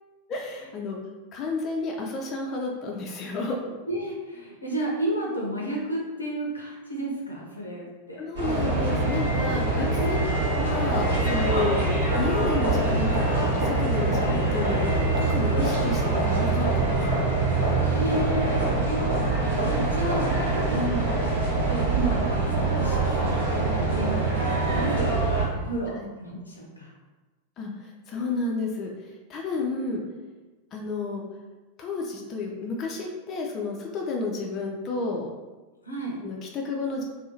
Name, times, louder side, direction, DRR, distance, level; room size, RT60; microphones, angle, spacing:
voice 1, 0.3-1.0 1.3-3.6 8.2-10.2 10.5-14.2 14.5-17.0 20.7-21.1 25.9-26.1 27.6-28.9 29.3-30.0 30.7-31.2 31.8-35.3 36.2-37.0, left 3 dB, 30° left, 0 dB, 0.4 m, -31 dB
voice 2, 3.9-8.3 9.9-10.8 14.2-14.4 17.8-19.3 19.6-20.5 21.7-25.2 25.5-26.9 35.8-36.2, right 1 dB, 80° left, -2 dB, 0.6 m, -32 dB
sound 1, 8.3-25.5, right 2 dB, 70° right, 0.8 m, -24 dB
2.6 x 2.3 x 2.7 m, 1.2 s
figure-of-eight pair, 90°, 0 cm